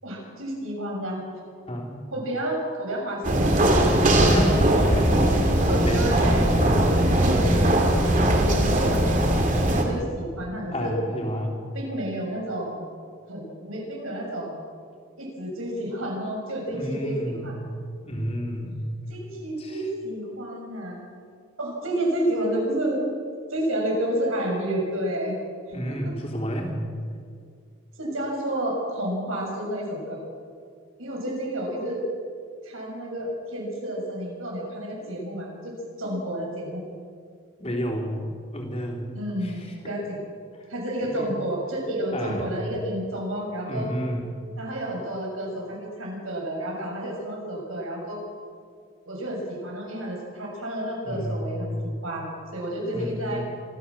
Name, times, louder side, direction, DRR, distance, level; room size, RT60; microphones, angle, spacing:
voice 1, 0.0-1.2 2.1-4.0 4.7-4.8 5.3-6.5 7.1-11.0 11.7-12.8 13.3-14.6 15.2-17.6 19.1-21.0 21.6-23.0 23.5-25.4 25.9-26.1 28.0-30.2 31.0-32.0 32.6-36.8 39.1-40.2 40.7-43.9 44.6-48.2 49.0-52.3 52.5-53.4, right 1 dB, 90° right, -1 dB, 6.6 m, -30 dB
sound 1, 3.2-9.8, right 1 dB, 40° right, 2.8 m, -20 dB
voice 2, 4.2-4.6 4.9-5.5 5.8-6.1 10.7-11.6 16.7-17.6 18.1-18.8 19.6-19.8 25.7-26.8 36.0-36.2 37.6-39.1 39.4-39.5 39.8-39.9 41.2-41.3 42.1-42.4 43.7-44.3 51.0-51.5 52.9-53.4, equal, 30° left, 0 dB, 3.7 m, -31 dB
26.0 x 14.0 x 7.5 m, 2.1 s
head